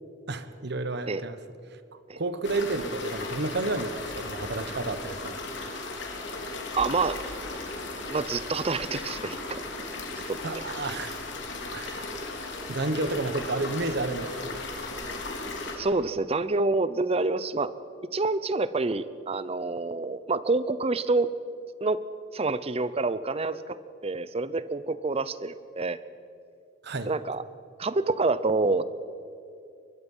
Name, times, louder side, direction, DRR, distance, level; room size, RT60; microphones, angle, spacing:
voice 1, 0.3-1.4 2.1-5.4 10.4-11.2 11.7-12.2 12.7-14.7 26.8-27.1, right 2 dB, 60° right, 11 dB, 1.2 m, -31 dB
sound 1, 2.4-15.8, left 2 dB, 65° left, 3.3 m, -36 dB
voice 2, 6.8-7.2 8.1-9.6 10.3-10.6 15.8-17.7 18.1-21.3 21.8-22.0 22.3-26.0 27.1-27.4 27.8-28.8, right 3 dB, 30° right, 15 dB, 0.7 m, -27 dB
23.5 x 21.0 x 5.6 m, 2.6 s
head